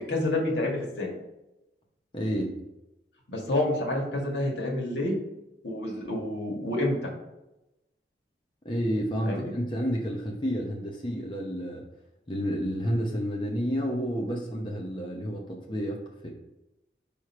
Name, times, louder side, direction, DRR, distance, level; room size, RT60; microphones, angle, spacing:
voice 1, 0.1-1.1 3.3-5.2 5.6-7.1 9.2-9.5, left 1 dB, 85° left, -1 dB, 1.8 m, -28 dB
voice 2, 2.1-2.6 8.6-11.8 12.3-16.3, equal, 25° left, -1 dB, 0.8 m, -30 dB
5.5 x 4.9 x 4.4 m, 0.94 s
head